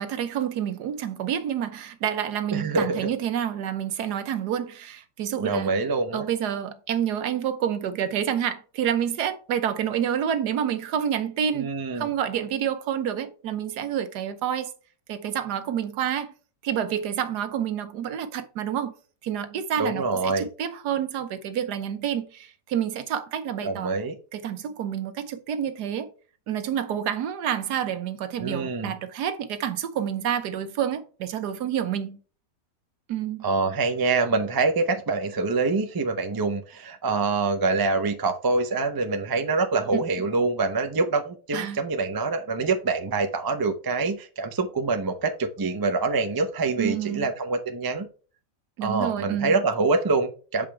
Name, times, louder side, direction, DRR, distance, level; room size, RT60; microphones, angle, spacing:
voice 1, 0.0-5.8 6.1-14.7 15.1-16.3 16.6-18.9 19.2-24.0 24.3-26.1 26.5-32.2 33.1-33.5 39.9-40.0 41.5-41.8 46.8-47.3 48.8-49.6, right 9 dB, 75° right, 1.3 m, -28 dB
voice 2, 2.5-3.1 5.4-6.3 11.5-12.1 19.8-20.5 23.6-24.2 28.4-28.9 33.4-48.1 48.8-50.7, right 3 dB, 35° right, 0.3 m, -25 dB
6.7 x 5.2 x 3.3 m
omnidirectional pair, 1.8 m